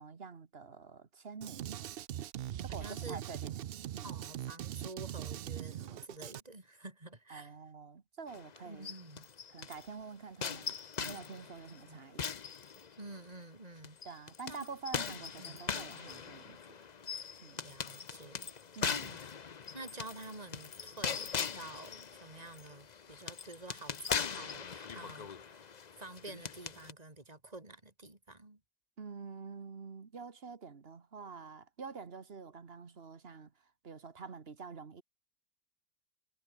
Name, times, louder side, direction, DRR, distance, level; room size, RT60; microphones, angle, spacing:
voice 1, 0.0-1.8 2.6-3.5 3.9-4.1 7.3-8.9 9.5-12.2 14.0-16.9 17.4-17.6 18.7-19.2 29.0-35.0, right 5 dB, 40° right, 1.6 m, -47 dB
Drum kit, 1.4-6.4, right 11 dB, 90° right, 0.5 m, -41 dB
voice 2, 2.7-3.2 4.0-7.6 8.6-9.3 11.8-12.0 13.0-14.0 14.5-14.7 15.4-15.6 17.6-18.5 19.7-25.7 25.9-28.6, right 2 dB, 25° right, 3.8 m, -49 dB
sound 1, 8.3-9.9 10.4-13.3 13.8-26.9, left 6 dB, 40° left, 0.7 m, -41 dB
omnidirectional pair, 1.6 m